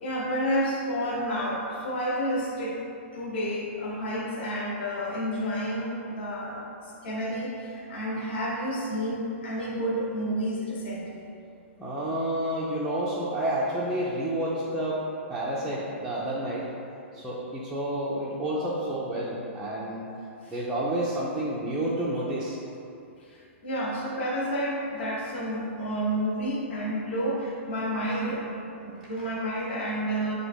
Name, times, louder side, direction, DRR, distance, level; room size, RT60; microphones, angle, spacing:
voice 1, 0.0-2.8 3.1-11.3 20.4-20.5 23.2-30.4, equal, 55° left, -3 dB, 1.0 m, -30 dB
voice 2, 11.8-15.0 15.3-16.7 17.1-20.1 20.5-22.6, right 1 dB, 5° right, -9 dB, 0.4 m, -29 dB
6.0 x 2.1 x 3.3 m, 2.6 s
hypercardioid pair, 155°, 7 cm